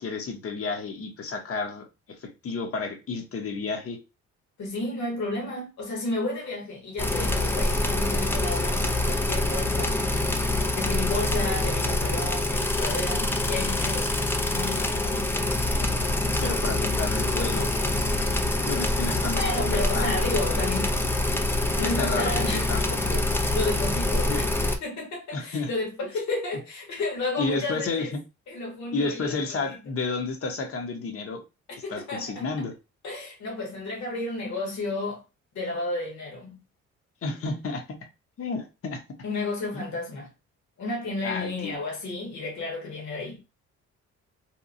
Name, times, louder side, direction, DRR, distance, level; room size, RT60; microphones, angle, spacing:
voice 1, 0.0-4.0 16.4-17.7 18.6-20.1 20.5-20.6 21.7-23.2 24.1-24.4 25.3-25.7 27.4-28.1 28.9-31.4 31.9-32.7 37.2-38.0 38.4-39.0 39.7-39.9 41.2-41.7, left 4 dB, 50° left, 0.8 m, -31 dB
voice 2, 4.6-10.0 10.7-14.1 14.5-15.3 19.3-21.0 21.8-22.7 23.4-24.5 24.8-28.1 28.5-29.6 31.8-32.6 33.0-35.2 35.5-36.6 39.2-40.3 40.8-43.4, left 2 dB, 65° left, 1.2 m, -32 dB
sound 1, 7.0-24.8, left 2 dB, 10° left, 0.3 m, -25 dB
2.9 x 2.2 x 2.5 m
cardioid pair, 90°, 30 cm